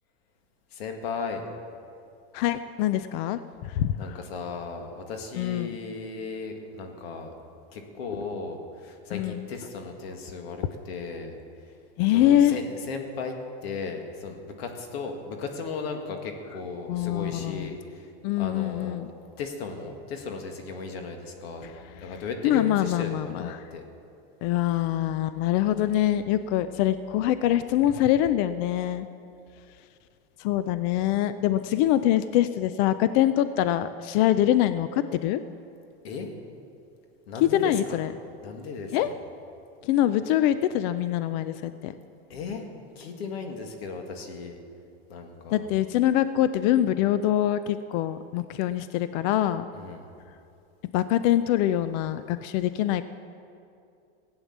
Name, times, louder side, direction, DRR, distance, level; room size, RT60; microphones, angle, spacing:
voice 1, 0.7-1.4 4.0-7.3 7.7-11.3 12.1-13.3 13.6-18.1 18.4-21.7 22.0-23.8 36.0-36.3 37.3-38.0 38.4-39.2 42.3-42.6 43.0-44.6 45.1-45.7 49.7-50.1, left 4 dB, 90° left, 4 dB, 2.0 m, -36 dB
voice 2, 2.3-4.2 5.4-5.7 9.1-9.5 12.0-12.6 16.9-17.8 18.2-19.1 21.6-21.7 22.0-22.1 22.4-23.6 24.4-29.1 30.4-35.4 37.4-38.1 38.9-39.1 39.8-41.9 45.5-49.7 50.9-53.0, left 12 dB, 45° left, 13 dB, 0.4 m, -24 dB
16.5 x 8.9 x 7.3 m, 2.5 s
supercardioid pair, 155°, 30 cm